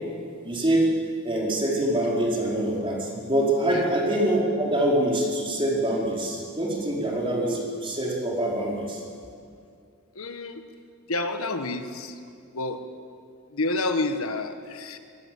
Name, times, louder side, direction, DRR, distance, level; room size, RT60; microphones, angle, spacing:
voice 1, 0.4-9.0, right 1 dB, 25° right, -3 dB, 4.6 m, -25 dB
voice 2, 10.1-10.6 11.1-12.2 12.5-12.8 13.5-15.0, left 2 dB, 75° left, 8 dB, 1.5 m, -29 dB
25.5 x 18.5 x 7.8 m, 2.4 s
head